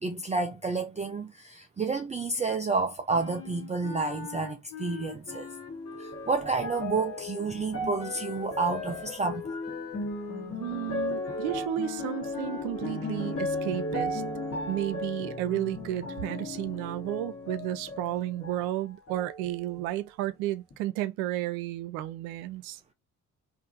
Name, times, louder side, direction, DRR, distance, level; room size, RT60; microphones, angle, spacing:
voice 1, 0.0-5.5 6.0-9.6, right 4 dB, 15° right, 0.4 m, -30 dB
Wind instrument woodwind instrument, 3.1-7.2 8.0-13.4, left 6 dB, 65° left, 1.3 m, -43 dB
sound 1, 5.3-18.7 19.1-20.0 20.7-20.8, left 2 dB, 30° left, 1.2 m, -36 dB
voice 2, 10.6-14.2 14.7-22.8, right 14 dB, 75° right, 0.5 m, -32 dB
2.7 x 2.5 x 2.7 m
hypercardioid pair, 50°, 42 cm